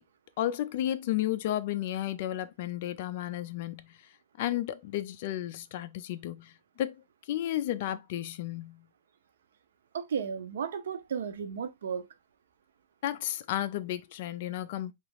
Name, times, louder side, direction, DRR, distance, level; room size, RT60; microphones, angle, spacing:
voice 1, 0.4-4.0 4.4-6.5 6.8-7.0 7.3-8.8 13.0-14.9, left 12 dB, 50° left, 0.3 m, -33 dB
voice 2, 9.9-12.1, right 7 dB, 80° right, 0.5 m, -34 dB
2.9 x 2.4 x 3.0 m
hypercardioid pair, 160°, 0 cm